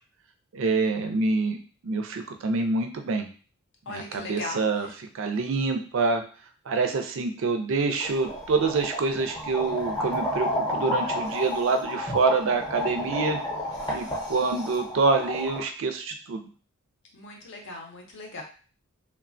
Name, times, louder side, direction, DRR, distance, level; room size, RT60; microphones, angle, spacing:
voice 1, 0.5-3.3 3.9-4.9 5.1-6.2 6.7-13.4 13.9-16.5, right 3 dB, 60° right, 5 dB, 0.4 m, -26 dB
voice 2, 3.9-4.9 17.1-18.4, left 2 dB, 55° left, 1 dB, 0.6 m, -39 dB
sound 1, 8.0-15.6, left 1 dB, 20° left, 0.7 m, -31 dB
3.1 x 2.1 x 2.5 m, 0.39 s
head